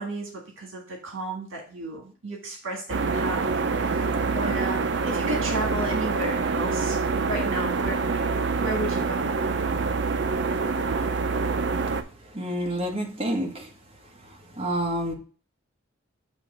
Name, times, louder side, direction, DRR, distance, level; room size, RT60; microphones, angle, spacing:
voice 1, 0.0-8.2 8.6-9.4, right 2 dB, 80° right, 0 dB, 1.7 m, -33 dB
sound 1, 2.9-12.0, right 4 dB, 60° right, 0.5 m, -26 dB
voice 2, 12.3-13.5 14.6-15.1, right 1 dB, 30° right, 1 dB, 1.2 m, -27 dB
7.4 x 3.0 x 5.0 m, 0.39 s
head